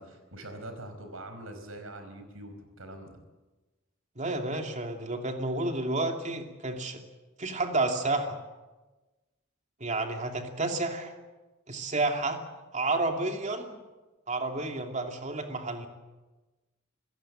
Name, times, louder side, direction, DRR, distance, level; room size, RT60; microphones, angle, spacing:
voice 1, 0.0-3.2, right 1 dB, 85° right, 7 dB, 4.7 m, -43 dB
voice 2, 4.2-7.0 7.4-8.4 9.8-11.1 11.7-12.4 12.7-13.8 14.3-15.9, right 2 dB, 35° right, 4 dB, 2.7 m, -30 dB
27.5 x 16.0 x 8.9 m, 1.2 s
head